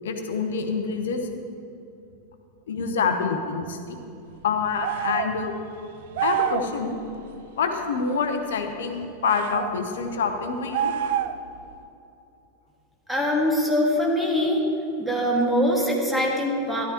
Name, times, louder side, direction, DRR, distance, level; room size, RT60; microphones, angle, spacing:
voice 1, 0.0-1.2 2.7-4.0 4.4-5.5 6.2-7.0 7.6-11.0, left 5 dB, 60° left, 6 dB, 1.0 m, -26 dB
sound 1, 4.8-5.3 6.1-6.7 9.2-9.7 10.7-11.5, right 10 dB, 55° right, 0.4 m, -26 dB
voice 2, 13.1-14.6 15.0-16.8, equal, 5° right, -3 dB, 2.1 m, -23 dB
13.0 x 11.0 x 3.1 m, 2.8 s
figure-of-eight pair, 90°, 0 cm